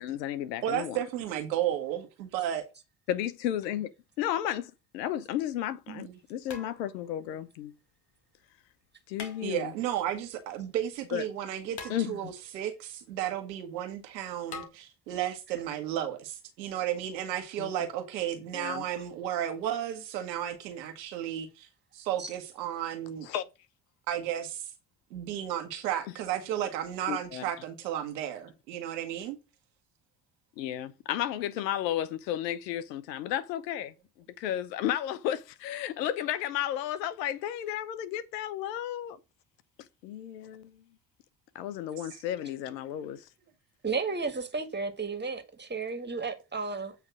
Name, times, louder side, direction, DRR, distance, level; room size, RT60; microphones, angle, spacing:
voice 1, 0.0-1.0 3.1-3.9 4.2-7.7 9.1-9.7 11.1-11.2 11.9-12.3 17.6-17.7 18.5-18.8 23.3-23.4 27.1-27.4 30.6-33.9 34.4-39.2 40.0-40.8 41.5-43.2, left 11 dB, 80° left, 0.8 m, -33 dB
voice 2, 0.6-2.6 5.9-6.2 9.4-21.7 21.9-23.3 24.1-24.7 25.1-29.4, right 11 dB, 80° right, 1.5 m, -33 dB
sound 1, 5.1-5.2 6.5-7.2 9.1-9.9 11.8-12.5 14.5-14.7, left 5 dB, 50° left, 2.0 m, -44 dB
voice 3, 43.8-46.9, right 4 dB, 20° right, 2.0 m, -33 dB
8.2 x 3.4 x 6.1 m
hypercardioid pair, 50°, 50 cm